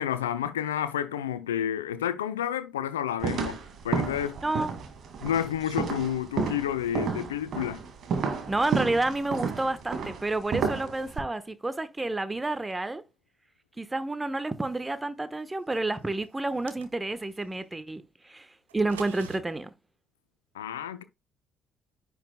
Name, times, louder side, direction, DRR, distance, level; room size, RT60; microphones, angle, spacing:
voice 1, 0.0-3.6 3.8-4.4 5.2-7.8 20.5-21.0, left 10 dB, 80° left, 0.6 m, -30 dB
sound 1, 3.2-11.2, right 5 dB, 50° right, 2.1 m, -32 dB
voice 2, 4.4-4.7 8.5-13.0 13.8-18.5 18.7-19.7, right 2 dB, 15° right, 1.1 m, -30 dB
sound 2, 16.4-17.3 18.7-19.4, right 8 dB, 80° right, 1.3 m, -45 dB
10.0 x 6.2 x 2.2 m
figure-of-eight pair, 50°, 0 cm